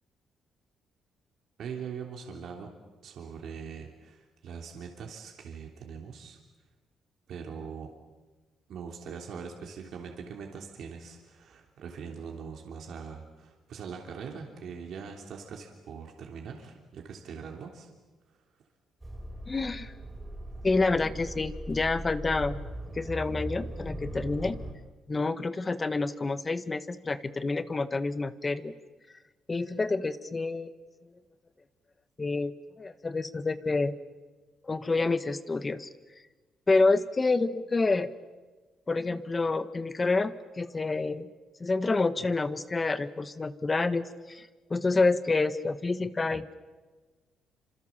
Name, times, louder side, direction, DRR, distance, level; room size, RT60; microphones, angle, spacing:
voice 1, 1.6-2.7 3.0-6.4 7.3-7.9 8.7-17.9, right 6 dB, 70° right, 1 dB, 3.2 m, -42 dB
sound 1, 19.0-24.7, right 1 dB, 15° right, 5.8 m, -39 dB
voice 2, 19.5-19.9 20.6-22.6 22.9-24.6 25.1-28.7 29.5-30.7 32.2-34.0 34.6-35.9 36.7-38.1 38.9-41.3 41.6-46.5, left 3 dB, 25° left, 12 dB, 1.4 m, -28 dB
27.5 x 26.5 x 7.4 m, 1.3 s
cardioid pair, 90°, 0 cm